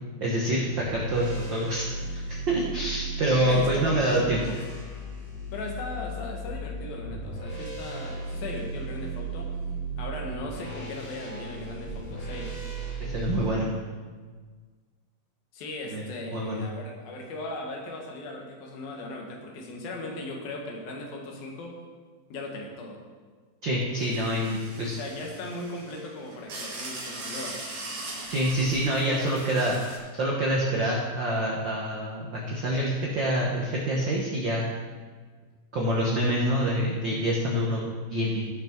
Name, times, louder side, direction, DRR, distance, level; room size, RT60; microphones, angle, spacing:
voice 1, 0.2-4.5 13.0-13.7 15.9-16.0 16.3-16.6 23.6-25.0 28.3-29.8 30.2-34.6 35.7-37.8 38.1-38.4, equal, 85° right, -3 dB, 1.0 m, -26 dB
sound 1, 0.6-13.5, right 3 dB, 40° left, 2.1 m, -36 dB
voice 2, 3.4-4.6 5.5-9.5 10.0-12.6 15.5-21.8 22.3-23.0 24.5-27.6, left 2 dB, 75° left, 1 dB, 3.3 m, -38 dB
sound 2, 23.9-30.0, right 2 dB, 55° right, 3.6 m, -40 dB
16.5 x 6.2 x 4.5 m, 1.5 s
omnidirectional pair, 4.2 m